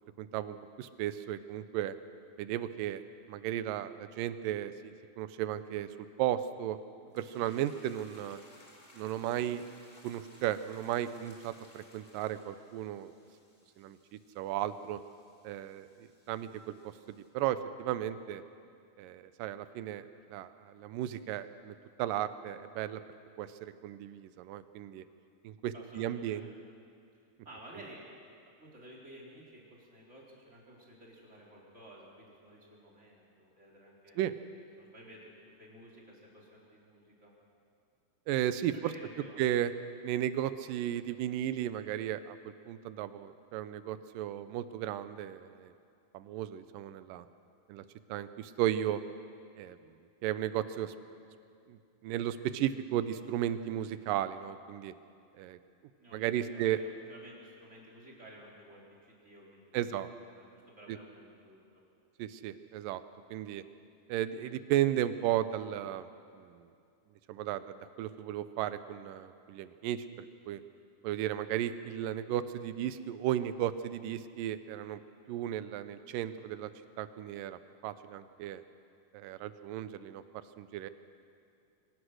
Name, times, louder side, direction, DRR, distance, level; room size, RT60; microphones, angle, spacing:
voice 1, 0.0-2.0 2.4-3.0 3.3-5.9 6.2-6.8 7.2-8.4 8.9-9.6 10.0-13.1 13.8-14.0 14.4-15.0 15.4-16.5 16.8-18.4 19.0-23.0 23.4-25.0 25.4-26.5 34.2-34.3 38.3-38.9 39.4-39.7 40.0-42.4 42.7-45.7 46.1-47.3 47.7-47.8 48.1-49.0 49.6-49.8 50.2-50.9 51.7-54.9 55.4-55.6 56.1-56.8 59.7-60.1 60.9-61.0 62.2-63.0 63.3-63.6 64.1-66.1 66.3-66.7 67.3-70.6 71.0-75.0 75.3-76.7 77.0-78.6 79.1-80.2 80.6-80.9, right 12 dB, 80° right, 13 dB, 2.3 m, -35 dB
sound 1, 7.1-17.3, left 1 dB, 15° left, 2.5 m, -60 dB
voice 2, 25.7-26.5 27.4-28.0 28.6-34.2 34.5-35.2 35.6-37.3 38.7-39.5 56.0-56.8 57.1-59.8 60.3-61.8, right 1 dB, 20° right, -4 dB, 3.8 m, -53 dB
23.0 x 17.5 x 6.4 m, 2.4 s
omnidirectional pair, 4.0 m